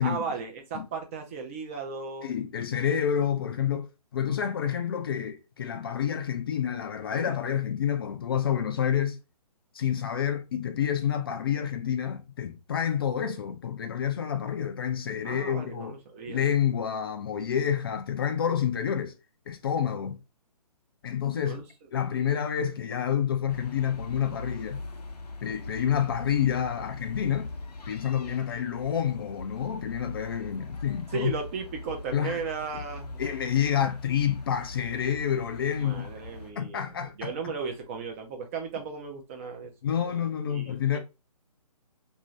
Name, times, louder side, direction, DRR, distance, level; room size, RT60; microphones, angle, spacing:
voice 1, 0.0-2.3 15.2-16.4 21.4-21.6 31.1-33.2 35.8-39.7 40.0-41.0, right 5 dB, 20° right, 0.5 m, -36 dB
voice 2, 2.2-9.2 9.7-16.0 16.3-19.2 19.5-20.2 21.0-21.6 21.9-24.8 25.4-27.5 27.9-31.3 32.1-32.4 33.2-36.1 36.6-37.3 39.8-41.0, left 9 dB, 35° left, 0.4 m, -28 dB
sound 1, 23.5-36.5, left 2 dB, 75° left, 0.7 m, -41 dB
2.7 x 2.5 x 3.1 m
figure-of-eight pair, 140°, 20 cm